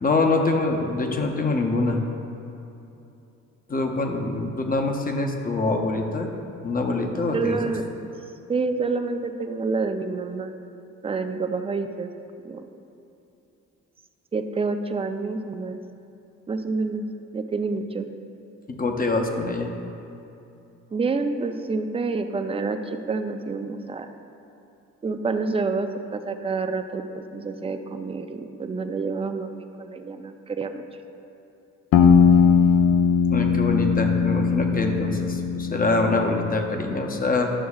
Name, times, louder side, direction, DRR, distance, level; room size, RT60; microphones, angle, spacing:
voice 1, 0.0-2.0 3.7-6.3 6.6-7.7 18.7-19.7 33.3-37.5, left 3 dB, 30° left, 3 dB, 0.8 m, -24 dB
voice 2, 7.3-7.8 8.5-10.5 11.0-12.1 12.4-12.6 14.3-15.8 16.5-17.0 17.3-18.1 20.9-24.1 25.0-29.5 29.8-30.8, right 4 dB, 20° right, 7 dB, 0.4 m, -28 dB
sound 1, 31.9-36.6, left 6 dB, 60° left, 0.6 m, -19 dB
11.0 x 6.1 x 2.4 m, 2.8 s
cardioid pair, 90°, 30 cm